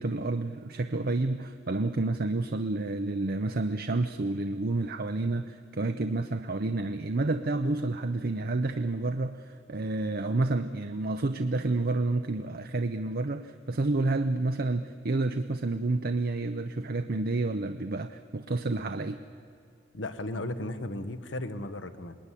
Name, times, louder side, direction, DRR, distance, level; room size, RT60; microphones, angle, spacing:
voice 1, 0.0-19.2, right 2 dB, 55° right, 7 dB, 0.7 m, -29 dB
voice 2, 19.9-22.2, left 1 dB, 70° left, 10 dB, 1.3 m, -35 dB
26.0 x 20.5 x 10.0 m, 2.4 s
head